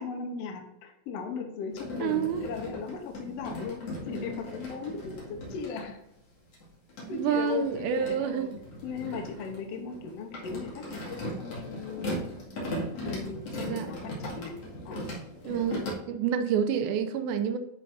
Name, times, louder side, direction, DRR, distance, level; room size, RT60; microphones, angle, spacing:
voice 1, 0.0-6.0 7.1-8.5 8.8-12.2 13.0-14.5 14.8-15.1, left 5 dB, 75° left, 3 dB, 1.4 m, -37 dB
sound 1, 1.7-5.9 6.5-15.9, equal, 45° left, 2.8 m, -38 dB
voice 2, 2.0-2.5 7.1-8.5 13.6-13.9 15.4-15.8 16.1-17.6, right 8 dB, 90° right, 9 dB, 2.5 m, -28 dB
10.5 x 5.8 x 2.6 m, 0.84 s
omnidirectional pair, 4.3 m